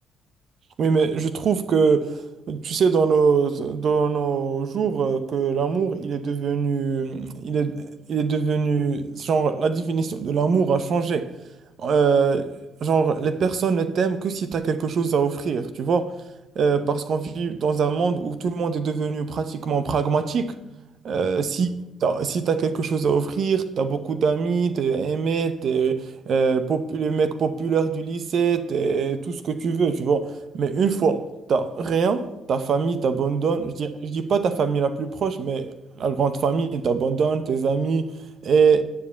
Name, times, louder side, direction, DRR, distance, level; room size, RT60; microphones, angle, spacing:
voice 1, 0.8-2.2 2.5-11.3 11.8-12.5 12.8-16.1 16.6-20.5 21.0-21.7 22.0-31.2 31.5-35.7 36.0-38.1 38.4-38.8, right 5 dB, 60° right, 0.7 m, -23 dB
9.5 x 5.1 x 8.1 m
cardioid pair, 90°, 0 cm